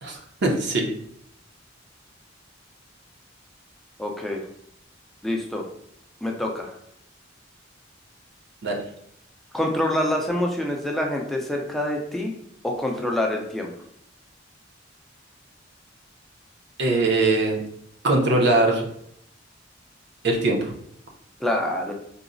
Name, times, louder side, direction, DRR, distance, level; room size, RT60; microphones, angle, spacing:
voice 1, 0.0-0.9 8.6-8.8 16.8-17.6 18.0-18.8 20.2-20.7, right 2 dB, 60° right, 1 dB, 0.6 m, -21 dB
voice 2, 4.0-4.4 5.2-5.6 6.2-6.7 9.5-12.3 12.6-13.7 21.4-21.9, left 1 dB, ahead, 0 dB, 0.4 m, -26 dB
3.8 x 2.0 x 2.5 m, 0.72 s
head